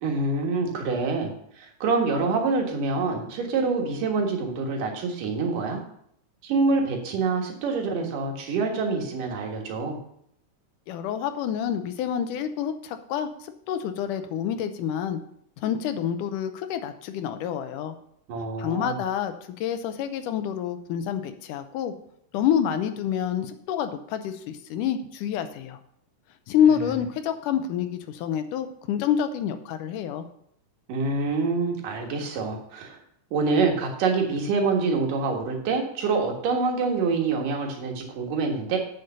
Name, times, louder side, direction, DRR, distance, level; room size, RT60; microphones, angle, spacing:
voice 1, 0.0-5.8 6.4-10.0 18.3-19.0 30.9-33.0 33.3-38.8, right 4 dB, 90° right, 1 dB, 3.2 m, -26 dB
voice 2, 10.9-15.2 15.6-18.0 18.6-21.9 22.3-25.8 26.5-30.2, left 9 dB, 80° left, 9 dB, 2.3 m, -27 dB
8.2 x 6.7 x 5.5 m, 0.70 s
omnidirectional pair, 3.7 m